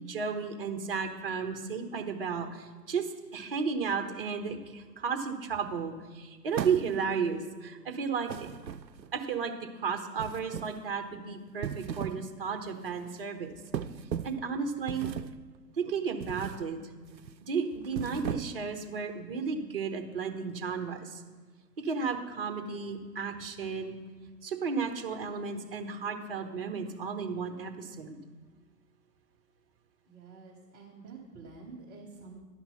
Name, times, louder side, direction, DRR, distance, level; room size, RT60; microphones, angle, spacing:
voice 1, 0.0-8.5 9.1-13.5 14.2-15.1 15.7-16.8 17.4-21.2 21.8-24.0 24.4-28.2, right 5 dB, 35° right, 6 dB, 1.1 m, -33 dB
sound 1, 6.5-7.2 8.3-9.2 10.2-10.9 11.5-12.3 12.6-12.9 13.7-14.5 14.9-15.4 16.2-16.7 17.0-17.3 17.8-18.7, right 8 dB, 85° right, 0.6 m, -37 dB
voice 2, 30.1-32.4, right 4 dB, 15° right, -7 dB, 1.2 m, -48 dB
11.0 x 5.8 x 5.6 m, 1.4 s
figure-of-eight pair, 130°, 50 cm